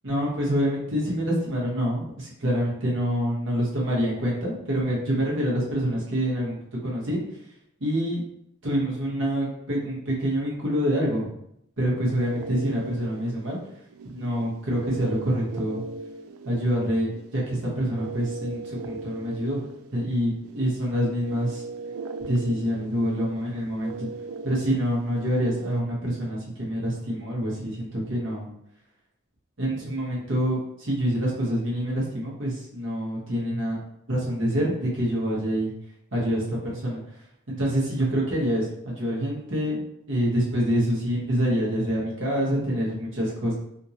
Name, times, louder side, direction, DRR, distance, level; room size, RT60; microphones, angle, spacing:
voice 1, 0.0-6.6 6.8-7.2 7.8-8.2 8.6-11.3 11.8-13.6 14.1-15.8 16.4-19.6 19.9-21.6 22.3-24.1 24.4-28.5 29.6-33.8 34.1-35.7 36.1-37.0 37.5-39.8 40.1-43.5, equal, 60° right, -4 dB, 1.2 m, -26 dB
sound 1, 12.2-25.8, right 3 dB, 85° right, 0.3 m, -39 dB
3.5 x 2.7 x 2.8 m, 0.74 s
head